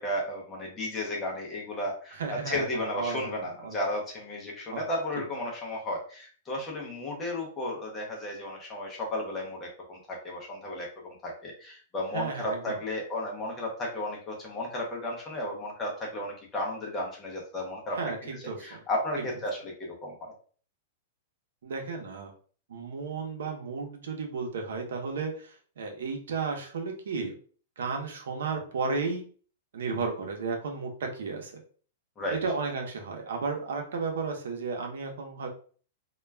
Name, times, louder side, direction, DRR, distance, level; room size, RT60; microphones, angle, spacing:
voice 1, 0.0-18.0 18.3-19.7 20.0-20.3 32.2-32.4, left 1 dB, 15° left, -2 dB, 0.6 m, -34 dB
voice 2, 2.2-3.8 4.7-4.9 5.2-5.3 12.1-12.8 17.9-18.8 19.2-19.3 21.6-22.3 22.7-27.3 27.8-29.3 29.7-31.6 32.3-35.5, right 4 dB, 75° right, 2 dB, 0.7 m, -33 dB
2.2 x 2.1 x 3.3 m, 0.43 s
supercardioid pair, 175°, 0 cm